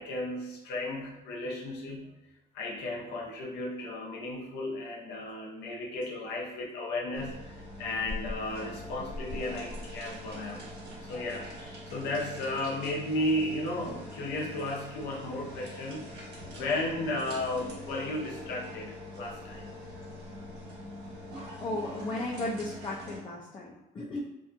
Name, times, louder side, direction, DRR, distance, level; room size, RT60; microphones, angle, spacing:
voice 1, 0.0-2.1 2.5-10.7 11.0-16.1 16.5-19.7, left 1 dB, 85° left, -2 dB, 0.7 m, -34 dB
sound 1, 7.1-23.2, left 1 dB, 70° right, 1.1 m, -43 dB
voice 2, 21.6-24.2, left 2 dB, 30° left, -3 dB, 0.4 m, -35 dB
2.7 x 2.2 x 2.5 m, 0.95 s
cardioid pair, 110°, 17 cm